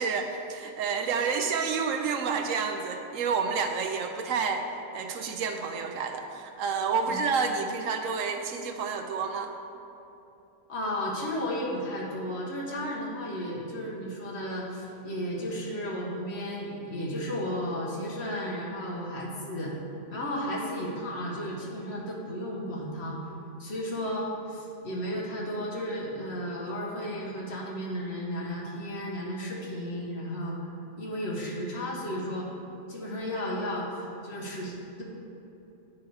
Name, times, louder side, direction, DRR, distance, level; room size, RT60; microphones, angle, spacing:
voice 1, 0.0-4.6 4.9-9.5, right 5 dB, 75° right, 5 dB, 0.9 m, -29 dB
voice 2, 10.7-19.7 20.1-23.2 23.6-30.5 31.0-32.5 32.9-35.0, equal, 50° left, -3 dB, 1.5 m, -34 dB
9.4 x 4.7 x 4.7 m, 2.9 s
omnidirectional pair, 1.4 m